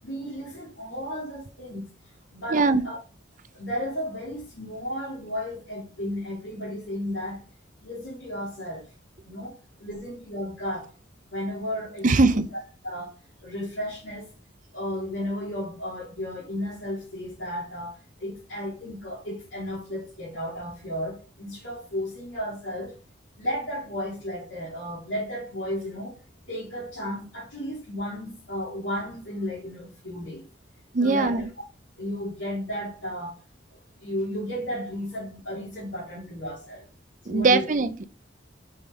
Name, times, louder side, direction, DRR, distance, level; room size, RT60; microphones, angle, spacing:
voice 1, 0.0-1.8 2.3-3.0 3.5-7.4 7.8-8.9 9.3-10.9 11.3-12.4 12.8-13.1 13.4-14.3 14.7-22.9 23.4-26.2 26.5-30.4 31.0-31.5 32.0-33.4 34.0-36.9 37.2-37.7, equal, 85° left, 2.6 m, -33 dB
voice 2, 2.5-2.8 12.0-12.4 30.9-31.4 37.3-38.0, right 3 dB, 40° right, 0.6 m, -21 dB
5.4 x 5.3 x 3.4 m
head